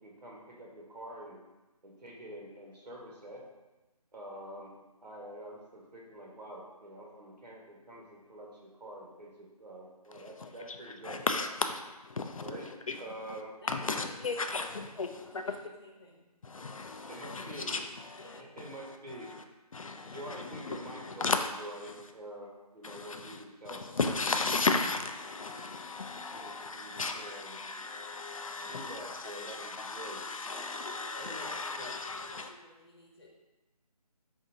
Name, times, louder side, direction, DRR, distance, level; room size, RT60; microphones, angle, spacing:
voice 1, 0.0-1.4 1.8-3.5 4.1-4.7 5.0-11.2 12.4-12.7 13.0-13.5 17.1-17.7 18.6-19.3 20.0-21.3 21.6-23.8 26.4-27.6 28.6-30.2 31.2-31.9, right 1 dB, 85° right, 1.3 m, -46 dB
voice 2, 10.1-10.8 11.0-13.4 13.7-15.4 16.4-19.4 19.7-21.5 21.8-22.0 22.8-32.5, left 3 dB, 55° left, 0.4 m, -36 dB
voice 3, 13.6-16.2 17.1-17.6 18.2-18.5 30.3-33.3, left 2 dB, 40° left, 0.9 m, -54 dB
4.9 x 2.6 x 2.7 m
figure-of-eight pair, 175°, 20 cm